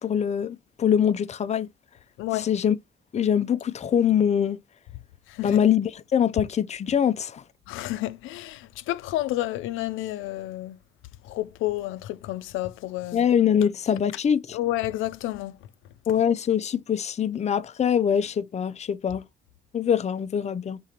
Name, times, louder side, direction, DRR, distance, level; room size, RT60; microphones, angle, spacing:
voice 1, 0.0-1.7 2.3-2.8 3.1-4.6 5.4-7.4 13.1-14.6 16.1-19.2 19.7-20.8, left 8 dB, 35° left, 0.5 m, -23 dB
voice 2, 2.2-2.5 5.3-5.6 7.7-10.8 11.2-13.3 14.5-15.6, left 15 dB, 90° left, 0.4 m, -30 dB
4.9 x 3.8 x 2.8 m
cardioid pair, 90°, 20 cm